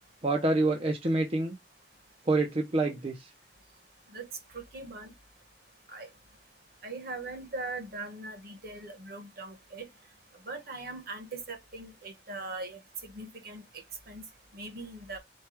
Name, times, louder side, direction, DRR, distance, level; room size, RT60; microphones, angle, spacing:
voice 1, 0.2-1.6 2.3-3.3, right 2 dB, 35° right, 0.6 m, -27 dB
voice 2, 4.5-5.1 5.9-6.1 6.8-9.9 10.4-14.3 14.5-15.2, right 3 dB, 60° right, 1.3 m, -41 dB
4.6 x 2.3 x 4.4 m
head